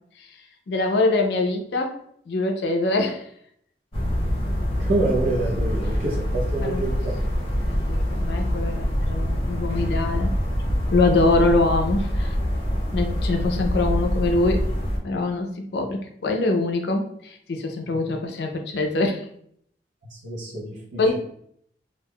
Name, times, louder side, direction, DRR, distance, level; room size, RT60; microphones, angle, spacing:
voice 1, 0.7-2.0 2.3-3.2 6.6-6.8 7.6-10.3 10.9-12.3 12.9-14.6 15.0-19.2 21.0-21.2, left 2 dB, 65° left, 4 dB, 0.4 m, -24 dB
sound 1, 3.9-15.0, equal, 30° left, 0.7 m, -25 dB
voice 2, 4.8-7.2 17.9-18.0 20.1-21.2, right 2 dB, 85° right, -5 dB, 0.7 m, -27 dB
2.3 x 2.2 x 3.4 m, 0.66 s
head